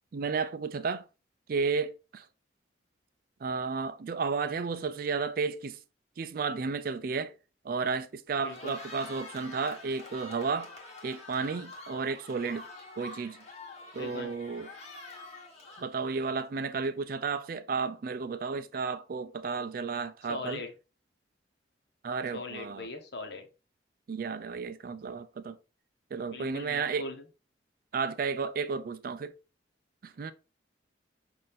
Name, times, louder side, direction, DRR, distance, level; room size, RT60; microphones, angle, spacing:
voice 1, 0.1-1.0 1.5-2.3 3.4-5.8 6.2-7.3 7.6-10.7 11.0-12.6 13.0-13.4 13.9-14.7 15.8-20.6 22.0-22.9 24.1-25.6 26.1-27.1 27.9-29.3 30.0-30.3, right 5 dB, 50° right, 0.3 m, -32 dB
voice 2, 8.4-8.8 13.9-14.3 20.3-20.7 22.3-23.5 26.3-27.2, left 3 dB, 60° left, 0.9 m, -40 dB
Cheering, 8.4-16.6, left 2 dB, 35° left, 1.2 m, -47 dB
5.9 x 2.6 x 3.4 m
head